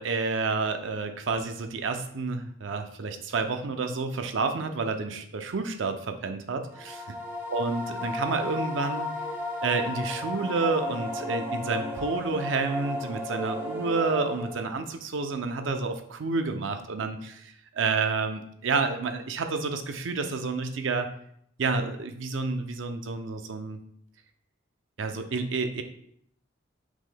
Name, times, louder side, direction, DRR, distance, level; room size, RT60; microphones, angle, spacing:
voice 1, 0.0-7.0 7.5-9.1 9.6-21.1 21.6-23.8 25.0-25.8, right 4 dB, 85° right, 7 dB, 0.5 m, -29 dB
sound 1, 6.7-14.8, left 1 dB, 15° right, 0.7 m, -34 dB
6.0 x 3.7 x 2.2 m, 0.70 s
head